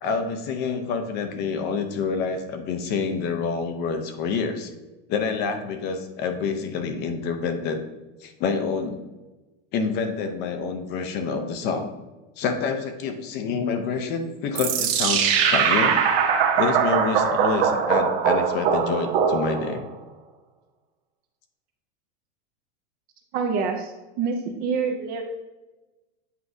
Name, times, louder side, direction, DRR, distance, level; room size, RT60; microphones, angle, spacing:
voice 1, 0.0-4.7 5.1-7.8 8.2-9.0 9.7-11.9 12.4-16.0 16.6-19.9, left 5 dB, 30° left, 7 dB, 0.5 m, -27 dB
sound 1, 14.6-19.9, right 7 dB, 55° right, 1.1 m, -21 dB
voice 2, 23.3-25.2, right 5 dB, 25° right, 4 dB, 0.4 m, -27 dB
8.2 x 4.7 x 2.6 m, 1.1 s
supercardioid pair, 145°, 36 cm